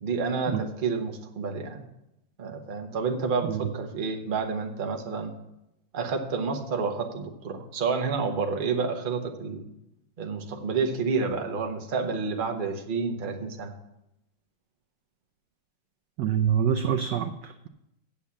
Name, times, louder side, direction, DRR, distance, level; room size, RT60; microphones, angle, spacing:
voice 1, 0.0-1.9 2.4-5.3 5.9-9.6 10.2-13.7, right 4 dB, 35° right, 3 dB, 0.8 m, -29 dB
voice 2, 16.2-17.7, right 8 dB, 75° right, 8 dB, 1.0 m, -26 dB
8.5 x 7.2 x 7.1 m, 0.85 s
omnidirectional pair, 2.3 m